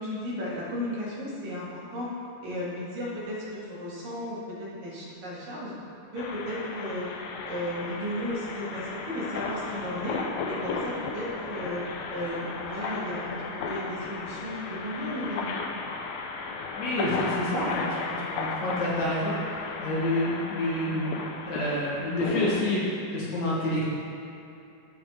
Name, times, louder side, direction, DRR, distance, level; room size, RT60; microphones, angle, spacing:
voice 1, 0.0-2.1 2.4-5.7 6.1-7.1 7.4-10.2 10.5-11.8 12.1-14.6 14.8-15.6, left 1 dB, 85° right, -7 dB, 3.7 m, -34 dB
sound 1, 6.2-22.6, left 4 dB, 80° left, 1.6 m, -35 dB
voice 2, 16.7-21.2 21.5-22.8 23.1-23.8, left 1 dB, 60° left, -7 dB, 2.7 m, -28 dB
13.5 x 4.9 x 3.7 m, 2.7 s
omnidirectional pair, 3.8 m